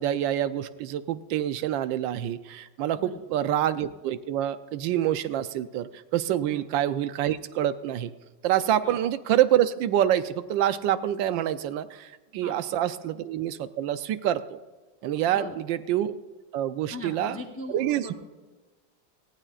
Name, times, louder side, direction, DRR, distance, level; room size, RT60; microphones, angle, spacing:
voice 1, 0.0-8.1 8.4-14.6 15.0-16.2 16.5-17.4 17.7-18.1, right 11 dB, 85° right, 13 dB, 1.3 m, -26 dB
voice 2, 16.9-18.1, left 1 dB, 20° left, 4 dB, 0.3 m, -40 dB
18.5 x 15.0 x 2.4 m, 1.3 s
omnidirectional pair, 2.0 m